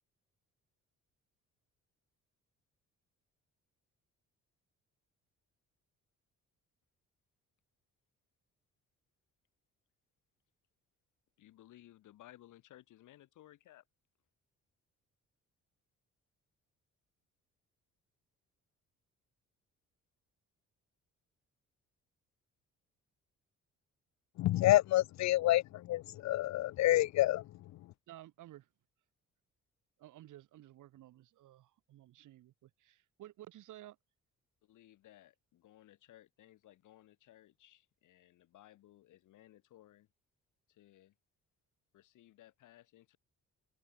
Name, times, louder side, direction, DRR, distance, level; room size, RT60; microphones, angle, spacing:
voice 1, 11.4-13.8 34.6-40.1 40.7-41.1 41.9-43.2, left 14 dB, 85° left, 6.9 m, -60 dB
voice 2, 24.4-27.4, left 15 dB, 65° left, 0.5 m, -28 dB
voice 3, 28.1-28.7 30.0-34.0, right 14 dB, 80° right, 3.3 m, -54 dB
cardioid pair, 90°, 30 cm